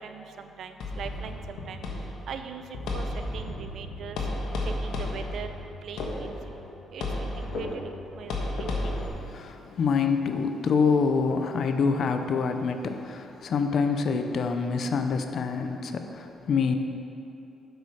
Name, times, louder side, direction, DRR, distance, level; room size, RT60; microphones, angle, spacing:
voice 1, 0.0-1.8 2.3-2.7 2.9-3.0 3.3-4.2 4.7-5.5 5.8-6.3 6.9-7.7 8.1-8.5, right 7 dB, 70° right, 8 dB, 0.6 m, -40 dB
sound 1, 0.8-9.1, left 2 dB, 75° left, 1.4 m, -33 dB
voice 2, 9.1-16.8, left 5 dB, 60° left, 7 dB, 0.6 m, -26 dB
7.9 x 6.3 x 5.5 m, 2.8 s
cardioid pair, 90°, 0 cm